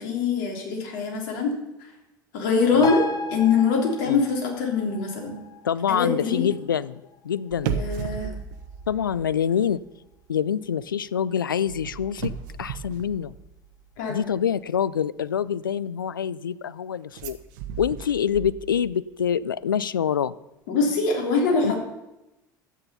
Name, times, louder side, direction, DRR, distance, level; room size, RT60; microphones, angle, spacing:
voice 1, 0.0-1.6 2.3-3.0 3.3-5.4 5.9-6.5 7.6-8.3 14.0-14.2 20.7-21.8, left 5 dB, 65° left, 0 dB, 3.5 m, -23 dB
sound 1, 2.8-9.8 10.1-10.2, left 3 dB, 35° left, 1.1 m, -37 dB
voice 2, 5.6-7.8 8.9-9.8 10.3-12.3 12.6-13.3 14.1-17.4 17.8-20.3 21.6-21.8, left 8 dB, 90° left, 18 dB, 0.4 m, -26 dB
sound 2, 7.5-9.8 10.1-10.4 11.7-13.9 17.1-19.0 19.3-19.4, right 7 dB, 65° right, 1.0 m, -34 dB
13.0 x 9.0 x 5.6 m, 0.96 s
hypercardioid pair, 70°, 11 cm